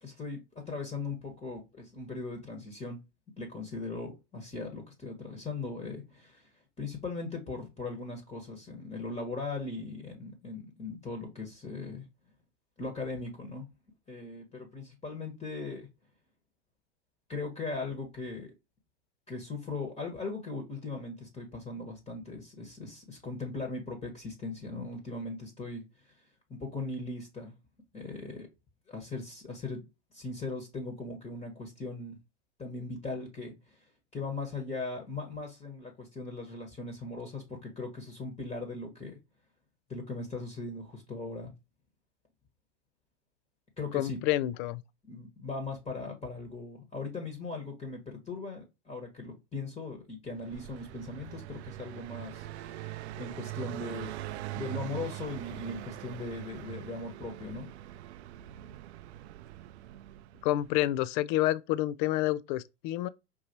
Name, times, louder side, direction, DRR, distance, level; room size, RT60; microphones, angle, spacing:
voice 1, 0.0-3.0 3.4-6.5 6.8-12.1 12.8-13.7 14.1-15.9 17.3-18.5 19.3-25.8 26.5-27.5 27.9-28.5 28.9-29.9 30.1-32.2 32.6-33.8 34.1-39.2 39.9-41.5 43.8-44.2 45.0-57.7, left 3 dB, 15° left, 1.3 m, -39 dB
voice 2, 43.9-44.8 60.4-63.1, left 15 dB, 45° left, 0.4 m, -28 dB
Car passing by, 50.3-60.9, right 14 dB, 70° right, 0.5 m, -42 dB
5.3 x 2.7 x 2.9 m
hypercardioid pair, 100°, 35 cm